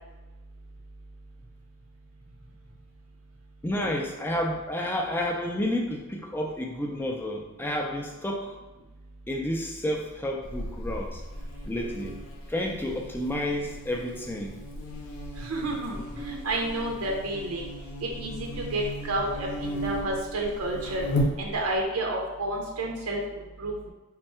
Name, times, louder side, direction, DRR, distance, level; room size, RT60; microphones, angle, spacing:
voice 1, 3.6-8.6 9.3-11.2 11.7-12.2 12.5-14.6, left 1 dB, 10° left, 1 dB, 0.3 m, -30 dB
Buzz, 10.4-21.8, equal, 75° left, 0.7 m, -35 dB
voice 2, 15.4-17.7 18.0-21.1 21.4-23.9, right 1 dB, 85° right, -1 dB, 0.6 m, -30 dB
3.4 x 2.3 x 4.2 m, 1.2 s
head